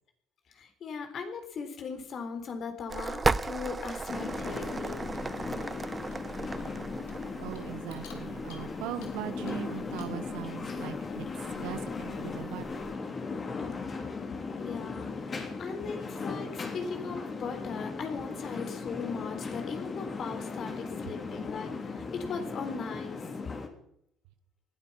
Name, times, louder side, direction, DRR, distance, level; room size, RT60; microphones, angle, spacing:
voice 1, 0.5-5.1 14.5-23.4, left 5 dB, 55° left, 6 dB, 3.8 m, -39 dB
sound 1, 2.9-12.9, right 4 dB, 25° right, 0.7 m, -37 dB
sound 2, 4.1-23.7, left 4 dB, 35° left, 3.6 m, -37 dB
Clock, 4.8-10.3, left 6 dB, 80° left, 3.3 m, -57 dB
voice 2, 7.4-11.3 11.6-12.8, right 12 dB, 75° right, 11 dB, 1.4 m, -40 dB
19.5 x 12.5 x 5.7 m, 0.73 s
hypercardioid pair, 60°, 0 cm